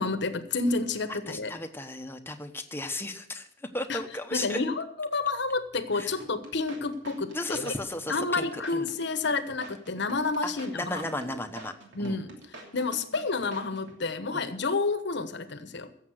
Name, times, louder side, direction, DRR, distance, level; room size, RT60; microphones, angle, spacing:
voice 1, 0.0-1.5 3.9-4.0 4.3-7.7 8.1-11.4 11.9-12.3 12.7-15.9, left 3 dB, 65° left, 11 dB, 1.1 m, -30 dB
voice 2, 1.1-3.5 3.7-4.6 5.9-6.1 7.3-8.9 10.4-11.7 12.0-12.2 14.3-14.5, left 1 dB, 10° left, 6 dB, 1.0 m, -35 dB
sound 1, 6.2-14.0, right 2 dB, 65° right, 3.0 m, -46 dB
16.0 x 7.3 x 6.5 m, 0.73 s
head